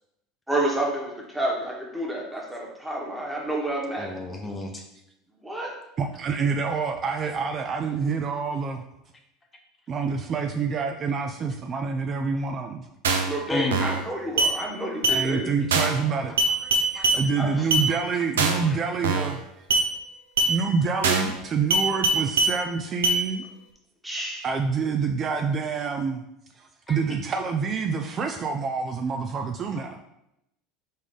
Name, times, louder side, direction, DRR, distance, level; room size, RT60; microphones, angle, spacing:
voice 1, 0.5-4.1 5.4-5.7 13.2-15.5 17.4-17.6 24.0-24.4, right 1 dB, 5° right, -2 dB, 1.3 m, -29 dB
voice 2, 4.0-4.8 13.5-13.9 16.3-16.4 16.9-17.1 17.9-18.0 18.6-18.8 26.9-27.0, left 3 dB, 25° left, 2 dB, 0.6 m, -31 dB
voice 3, 6.0-8.8 9.9-12.9 15.1-16.4 17.1-19.5 20.5-23.4 24.4-26.2 26.6-30.0, right 5 dB, 40° right, 5 dB, 0.4 m, -27 dB
sound 1, 13.0-13.3 13.7-14.0 14.4-14.5 15.0-15.2 15.7-16.0 16.4-17.2 17.7-17.9 18.4-18.7 19.0-19.3 19.7-19.9 20.4-20.5 21.0-21.3 21.7-22.5 23.0-23.2, right 2 dB, 90° right, 0.5 m, -22 dB
4.0 x 3.5 x 3.3 m, 0.83 s
hypercardioid pair, 85°, 0 cm